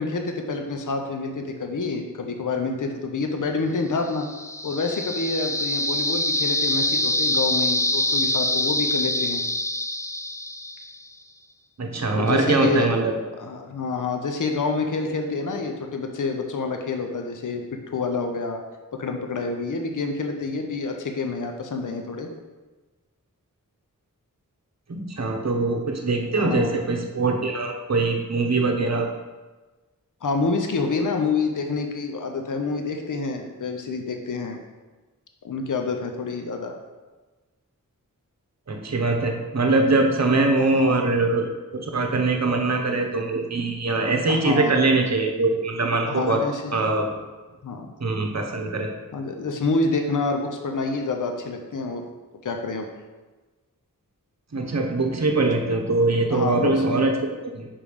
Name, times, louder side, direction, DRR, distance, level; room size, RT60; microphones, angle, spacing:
voice 1, 0.0-4.3 4.6-9.4 12.1-12.9 13.4-17.6 17.9-18.6 18.9-22.3 26.4-26.7 30.2-34.6 35.4-36.7 40.6-41.0 44.3-44.8 46.1-46.8 47.6-47.9 49.1-52.1 52.4-52.9 56.3-57.0, left 3 dB, 65° left, 4 dB, 0.7 m, -27 dB
sound 1, 4.1-11.0, left 1 dB, 10° left, 0.4 m, -25 dB
voice 2, 11.8-13.1 24.9-29.1 38.7-46.4 46.7-47.1 48.0-48.9 54.5-57.7, right 3 dB, 50° right, 3 dB, 1.0 m, -22 dB
5.3 x 5.2 x 5.0 m, 1.2 s
wide cardioid pair, 85°, 34 cm